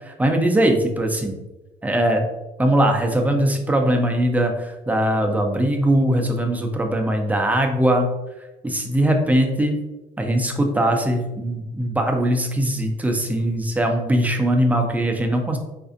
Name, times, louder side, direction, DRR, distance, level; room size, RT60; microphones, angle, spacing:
voice 1, 0.0-1.4 1.8-2.3 2.6-8.1 8.6-9.8 10.2-15.6, right 1 dB, 10° right, 3 dB, 0.5 m, -20 dB
4.0 x 2.5 x 2.5 m, 1.0 s
cardioid pair, 110°, 17 cm